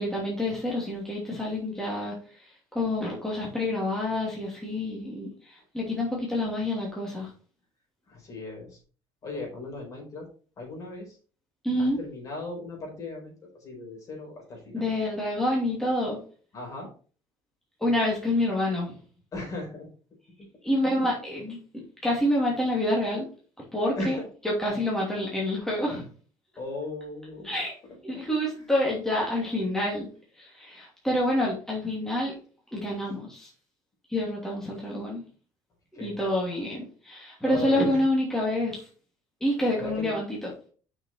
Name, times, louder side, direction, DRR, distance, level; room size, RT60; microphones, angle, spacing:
voice 1, 0.0-7.3 11.6-12.0 14.7-16.2 17.8-19.0 20.6-23.3 23.7-24.2 24.4-26.0 27.4-27.7 28.0-30.1 30.4-32.3 32.7-33.5 34.1-35.2 36.0-38.9 39.4-40.5, left 1 dB, 5° left, -4 dB, 2.8 m, -28 dB
voice 2, 8.1-8.8 9.2-10.2 10.6-11.2 11.8-14.9 16.5-16.9 19.3-19.9 23.9-24.3 26.6-27.5 28.6-28.7 35.9-36.3 37.4-38.0 39.7-40.1, left 2 dB, 40° left, 0 dB, 4.7 m, -37 dB
6.3 x 6.3 x 4.4 m, 0.39 s
cardioid pair, 125°, 9 cm